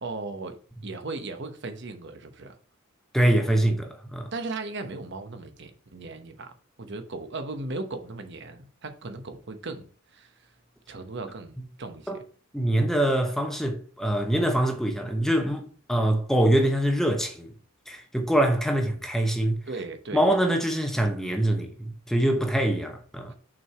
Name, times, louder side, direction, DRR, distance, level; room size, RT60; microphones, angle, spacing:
voice 1, 0.0-0.6 0.8-2.6 4.3-6.5 6.8-9.9 10.1-10.3 10.9-12.2 19.7-20.2 23.3-23.4, right 3 dB, 55° right, 1.0 m, -37 dB
voice 2, 3.1-4.3 12.1-12.2 12.5-17.5 17.9-19.6 20.1-23.3, right 1 dB, ahead, 0.8 m, -24 dB
6.2 x 4.7 x 4.7 m
head